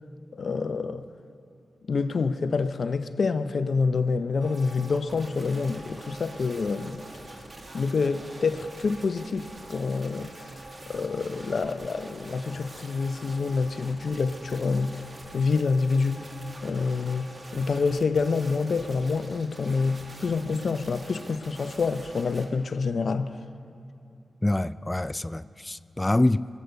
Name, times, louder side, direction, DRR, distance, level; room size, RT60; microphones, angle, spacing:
voice 1, 0.3-1.0 1.8-7.2 7.7-10.6 10.9-15.0 15.3-16.3 16.6-23.4, left 4 dB, 65° left, 0.6 m, -27 dB
sound 1, 4.4-22.5, right 2 dB, 40° right, 1.9 m, -45 dB
voice 2, 24.4-26.5, left 1 dB, 20° left, 0.3 m, -25 dB
23.0 x 8.2 x 6.6 m
cardioid pair, 45°, 0 cm